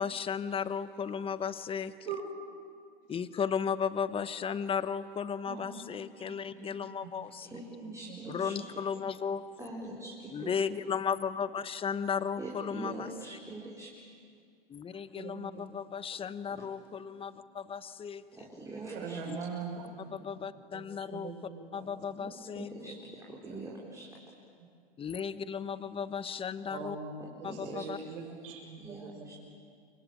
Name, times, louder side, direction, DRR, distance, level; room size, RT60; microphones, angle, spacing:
voice 1, 0.0-1.9 3.1-7.5 8.3-9.5 10.3-13.4 14.7-18.2 19.3-19.4 20.1-21.3 21.7-22.7 25.0-27.0 27.4-28.0, left 7 dB, 20° left, 14 dB, 1.1 m, -35 dB
voice 2, 6.1-7.1 7.4-7.6 8.1-8.7 14.9-15.7 17.1-17.3 18.9-20.3 20.7-21.9 22.8-23.0 23.5-23.6 26.7-27.1 27.4-29.4, right 5 dB, 65° right, 3 dB, 6.4 m, -43 dB
voice 3, 7.4-8.8 9.6-10.5 12.4-14.0 16.5-16.7 18.3-19.3 22.2-22.3 22.5-24.1 27.4-27.9 28.8-29.3, right 2 dB, 10° right, -4 dB, 4.5 m, -43 dB
28.5 x 23.5 x 9.0 m, 2.2 s
hypercardioid pair, 115°, 29 cm